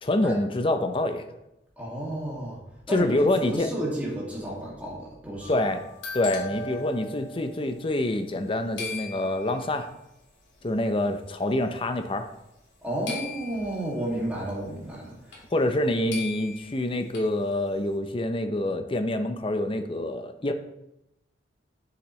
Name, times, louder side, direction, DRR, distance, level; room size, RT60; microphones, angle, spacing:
voice 1, 0.0-1.2 2.9-3.7 5.5-5.8 6.1-9.9 10.6-12.3 15.5-20.5, left 1 dB, 30° left, 7 dB, 0.6 m, -26 dB
voice 2, 1.8-2.6 2.9-5.6 12.8-15.4, right 1 dB, 10° right, -5 dB, 2.2 m, -32 dB
sound 1, 5.4-8.5 8.8-9.7 10.6-10.7 11.2-11.6 13.1-13.9 15.3-15.4 15.7-15.8 16.1-17.3, left 3 dB, 80° left, 2.3 m, -38 dB
7.7 x 6.9 x 3.2 m, 0.87 s
head